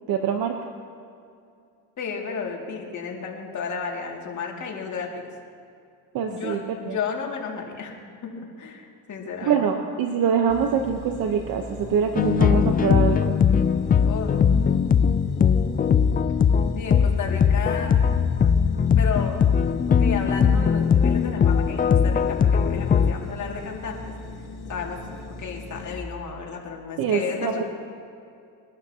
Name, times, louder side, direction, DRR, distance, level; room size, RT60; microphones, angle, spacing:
voice 1, 0.1-0.5 6.1-7.0 9.4-13.4 27.0-27.6, right 7 dB, 65° right, 4 dB, 1.1 m, -24 dB
voice 2, 2.0-5.3 6.3-9.6 14.0-14.4 16.7-17.9 19.0-19.4 19.9-24.1 24.7-25.0 25.3-27.6, left 5 dB, 50° left, -1 dB, 2.5 m, -33 dB
sound 1, 10.5-26.0, left 2 dB, 85° left, 1.8 m, -38 dB
sound 2, 12.2-23.1, left 7 dB, 25° left, 0.4 m, -20 dB
23.0 x 12.0 x 2.9 m, 2.4 s
cardioid pair, 100°, 37 cm